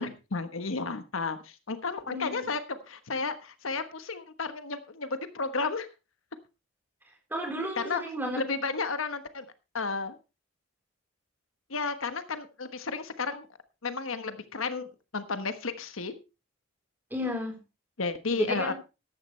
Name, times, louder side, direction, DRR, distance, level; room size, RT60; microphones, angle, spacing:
voice 1, 0.0-5.9 7.8-8.0 8.3-9.5 9.7-10.2 11.7-13.5 13.8-14.9 15.1-16.1 18.0-18.7, left 4 dB, 90° left, 10 dB, 1.3 m, -32 dB
voice 2, 2.1-2.5 7.3-8.4 17.1-17.6 18.3-18.7, equal, 10° right, 2 dB, 4.1 m, -33 dB
14.0 x 11.5 x 3.2 m, 0.29 s
head